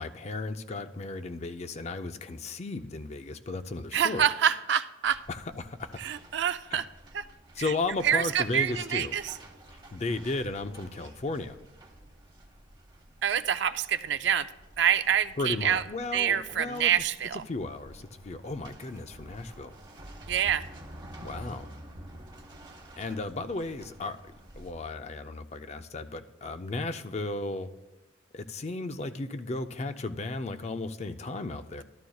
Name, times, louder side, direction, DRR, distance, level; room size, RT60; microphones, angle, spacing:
voice 1, 0.0-4.3 5.3-6.0 6.7-6.9 7.5-9.2 9.7-11.6 15.4-16.9 17.3-19.7 21.2-21.7 23.0-24.2 24.6-27.7 28.3-31.8, left 2 dB, 35° left, 9 dB, 0.4 m, -35 dB
voice 2, 3.9-5.2 6.0-6.8 7.1-7.2 7.6-7.7 8.0-9.2 13.2-14.5 14.8-15.8 16.1-17.4 20.3-20.6, right 9 dB, 65° right, 12 dB, 0.4 m, -26 dB
sound 1, 5.0-24.7, right 1 dB, 25° right, 1.0 m, -50 dB
13.0 x 13.0 x 2.3 m, 1.1 s
head